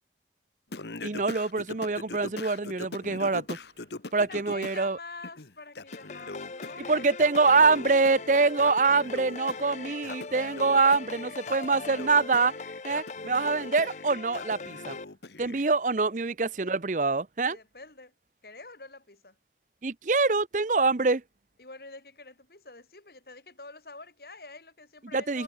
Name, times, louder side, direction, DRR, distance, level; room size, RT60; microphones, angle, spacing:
Singing, 0.7-4.8 5.2-15.6, left 2 dB, 75° left, 1.5 m, -42 dB
voice 1, 1.0-3.6 4.1-5.0 6.9-12.5 12.8-14.9 15.4-17.6 19.8-21.2 25.1-25.4, right 4 dB, 45° right, 0.7 m, -25 dB
voice 2, 4.3-7.3 15.5-16.1 17.4-18.1 18.4-19.4 21.6-25.4, left 3 dB, 60° left, 2.8 m, -47 dB
sound 1, 5.9-15.0, left 4 dB, 40° left, 0.7 m, -40 dB
head